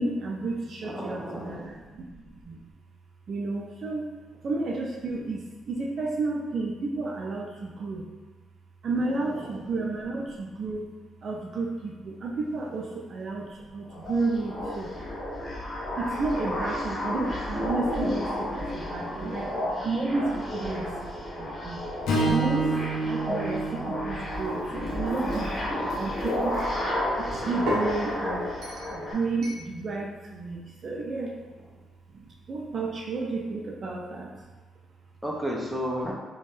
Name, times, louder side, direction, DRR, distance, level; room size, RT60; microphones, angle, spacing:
voice 1, 0.0-2.6 3.3-4.1 4.4-8.0 8.8-10.9 11.2-14.9 16.0-21.1 21.4-21.8 22.2-25.5 26.0-28.5 28.9-31.4 32.1-34.3, right 3 dB, 50° right, -1 dB, 0.3 m, -32 dB
voice 2, 0.8-1.8 9.0-9.6 18.8-19.5 25.3-26.1 35.2-36.1, equal, 5° right, -3 dB, 0.6 m, -35 dB
sound 1, 13.9-29.1, left 1 dB, 30° left, 0.7 m, -32 dB
Strum, 22.1-26.4, right 2 dB, 85° left, 0.5 m, -30 dB
sound 2, 24.4-26.7 27.3-27.9 28.6-29.0 29.4-29.7, right 1 dB, 75° right, 0.8 m, -35 dB
2.5 x 2.2 x 3.2 m, 1.3 s
cardioid pair, 90°, 0 cm